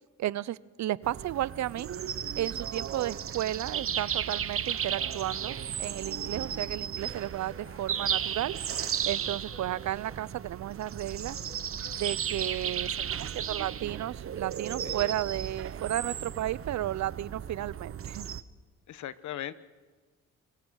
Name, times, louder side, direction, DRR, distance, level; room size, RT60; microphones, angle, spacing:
voice 1, 0.2-1.9 2.4-8.5 9.1-11.4 12.0-18.3, right 13 dB, 65° right, 20 dB, 0.7 m, -33 dB
sound 1, 1.0-18.4, right 8 dB, 45° right, 1.0 m, -35 dB
Alarm, 4.9-13.5, left 2 dB, 45° left, 6.2 m, -57 dB
voice 2, 18.9-19.6, left 11 dB, 75° left, 14 dB, 1.2 m, -38 dB
26.0 x 24.0 x 6.5 m, 1.4 s
cardioid pair, 90°, 30 cm